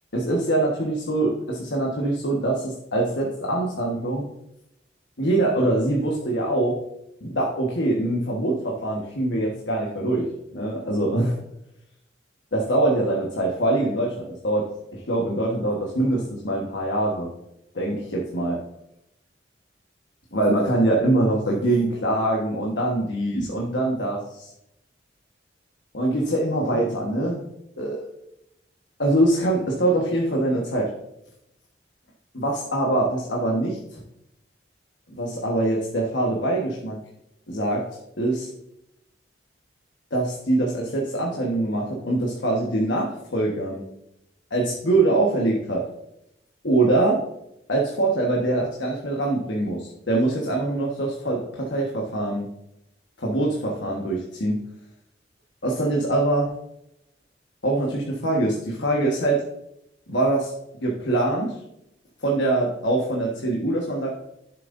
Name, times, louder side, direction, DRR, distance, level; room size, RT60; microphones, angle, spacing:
voice 1, 0.1-4.2 5.2-6.8 7.2-10.3 10.5-11.3 12.5-14.6 14.9-17.3 17.7-18.6 20.3-24.5 25.9-27.4 27.8-28.0 29.0-30.9 32.3-34.0 35.2-37.0 37.5-37.8 38.2-38.5 40.1-43.8 44.5-45.8 46.6-47.2 47.7-52.5 53.2-54.6 55.6-56.5 57.6-59.4 60.1-60.5 60.8-61.5 62.2-64.1, right 2 dB, 70° left, -2 dB, 1.4 m, -23 dB
11.0 x 7.5 x 2.6 m, 0.83 s
head